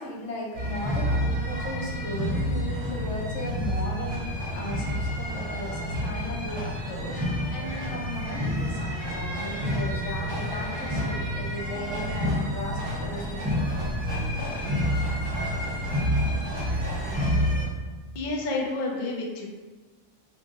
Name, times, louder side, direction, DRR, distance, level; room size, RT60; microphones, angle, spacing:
voice 1, 0.0-7.2 7.5-13.8, left 1 dB, 80° left, -2 dB, 1.1 m, -36 dB
sound 1, 0.5-17.7, equal, 25° right, 0.8 m, -29 dB
voice 2, 18.1-19.5, left 2 dB, 55° left, -1 dB, 0.6 m, -29 dB
2.7 x 2.6 x 3.6 m, 1.3 s
omnidirectional pair, 1.2 m